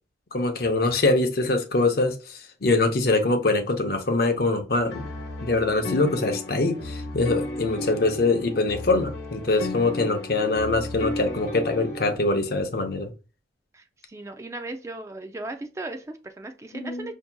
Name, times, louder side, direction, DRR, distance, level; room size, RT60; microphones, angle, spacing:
voice 1, 0.3-5.1 5.4-13.1 16.8-17.1, left 2 dB, 60° left, 0.7 m, -23 dB
sound 1, 4.9-12.1, left 2 dB, 80° left, 1.0 m, -34 dB
voice 2, 13.7-17.1, right 2 dB, 15° right, 0.3 m, -37 dB
5.7 x 2.7 x 2.2 m
head